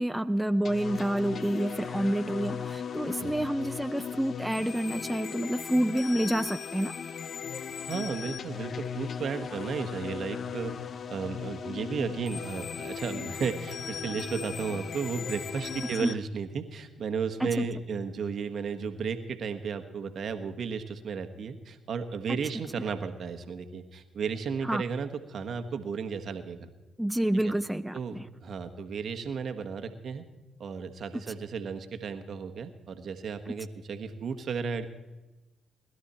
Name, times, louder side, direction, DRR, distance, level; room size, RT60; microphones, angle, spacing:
voice 1, 0.0-6.9 16.0-16.1 17.4-17.6 24.6-24.8 27.0-28.3 31.1-31.3, right 1 dB, 5° right, 11 dB, 0.5 m, -28 dB
sound 1, 0.6-16.1, left 7 dB, 55° left, 0.6 m, -37 dB
voice 2, 7.9-10.7 11.1-26.7 27.4-27.5 27.9-30.2 30.6-34.9, right 6 dB, 60° right, 7 dB, 1.3 m, -34 dB
20.5 x 12.0 x 4.4 m, 1.1 s
hypercardioid pair, 50°, 0 cm